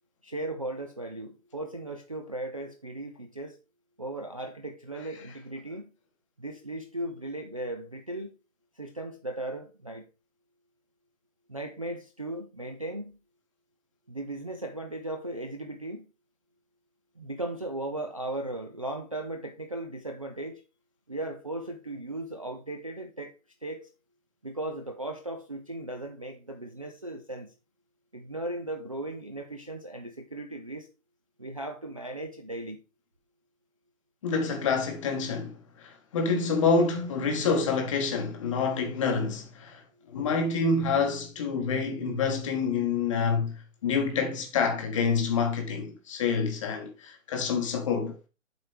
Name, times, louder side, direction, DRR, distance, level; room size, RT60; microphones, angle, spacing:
voice 1, 0.2-3.6 4.0-5.9 6.4-8.3 8.8-10.1 11.5-13.2 14.1-16.0 17.2-20.6 21.1-23.3 23.6-23.9 24.4-27.5 28.1-30.9 31.4-32.8, right 1 dB, 25° right, 0.5 m, -37 dB
voice 2, 34.2-39.8 40.1-43.5 43.8-48.1, left 5 dB, 25° left, 1.0 m, -27 dB
7.9 x 4.3 x 4.8 m
figure-of-eight pair, 140°, 40 cm